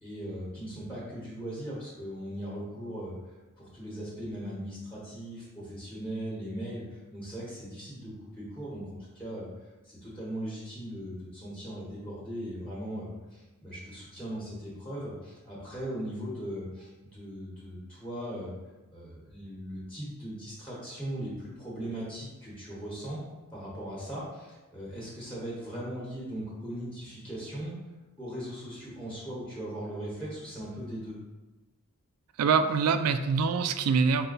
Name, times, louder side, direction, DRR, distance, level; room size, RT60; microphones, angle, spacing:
voice 1, 0.0-3.1 3.6-9.5 9.8-18.5 18.9-23.2 23.5-27.8 28.2-31.2, right 1 dB, 5° left, -6 dB, 1.1 m, -39 dB
voice 2, 32.4-34.3, right 5 dB, 90° right, 9 dB, 0.3 m, -24 dB
5.4 x 2.2 x 3.9 m, 1.1 s
head